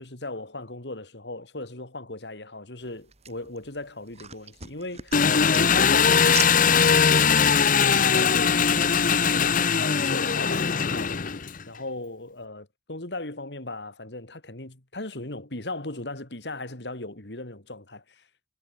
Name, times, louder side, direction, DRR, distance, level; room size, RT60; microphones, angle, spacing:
voice 1, 0.0-11.2 11.7-18.2, left 2 dB, 70° left, 3.2 m, -38 dB
sound 1, 2.8-8.5, right 8 dB, 40° right, 6.8 m, -40 dB
Engine, 5.1-11.6, left 6 dB, 50° left, 0.9 m, -20 dB
head